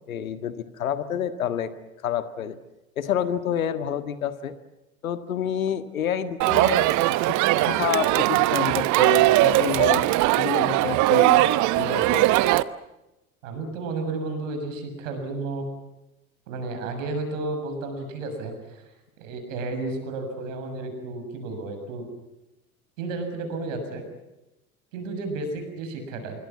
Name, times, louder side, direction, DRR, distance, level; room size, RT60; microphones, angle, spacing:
voice 1, 0.0-1.7 2.0-2.6 3.0-4.5 5.0-7.1 7.6-10.0 10.4-12.3, left 9 dB, 70° left, 11 dB, 1.8 m, -28 dB
Crowd, 6.4-12.6, right 16 dB, 45° right, 1.0 m, -20 dB
voice 2, 13.4-15.7 16.5-18.8 19.2-22.1 23.0-24.0 24.9-26.4, right 3 dB, 60° right, 6 dB, 7.1 m, -32 dB
26.5 x 24.0 x 7.4 m, 0.96 s
figure-of-eight pair, 70°, 42 cm